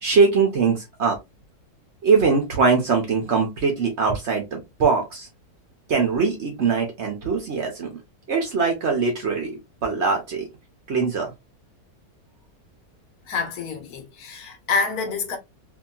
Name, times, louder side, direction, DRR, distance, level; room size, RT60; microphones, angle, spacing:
voice 1, 0.0-1.2 2.0-5.3 5.9-7.9 8.3-9.5 9.8-10.5 10.9-11.3, right 4 dB, 55° right, 0.9 m, -21 dB
voice 2, 13.3-15.4, left 4 dB, 70° left, 1.3 m, -27 dB
2.8 x 2.7 x 2.3 m
omnidirectional pair, 1.7 m